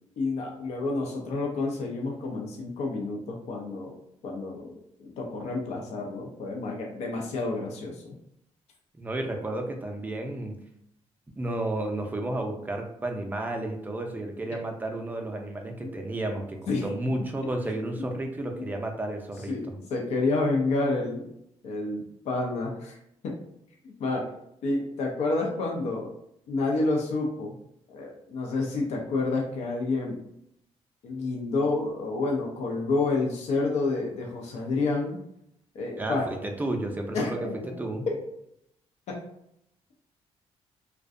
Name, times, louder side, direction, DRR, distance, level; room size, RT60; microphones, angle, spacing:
voice 1, 0.2-3.9 4.2-4.7 5.0-8.1 15.8-15.9 16.7-16.9 17.6-18.1 18.6-18.7 19.5-21.3 21.6-23.0 23.2-23.4 23.8-24.3 24.6-26.1 26.5-27.5 27.9-30.2 31.0-35.2 35.7-36.5 37.1-38.2 39.1-39.2, left 3 dB, 70° left, 0 dB, 0.5 m, -29 dB
voice 2, 9.0-10.5 11.4-19.5 36.0-37.5 37.8-38.1, right 1 dB, 15° right, 3 dB, 0.4 m, -32 dB
2.5 x 2.1 x 2.4 m, 0.75 s
cardioid pair, 95°, 12 cm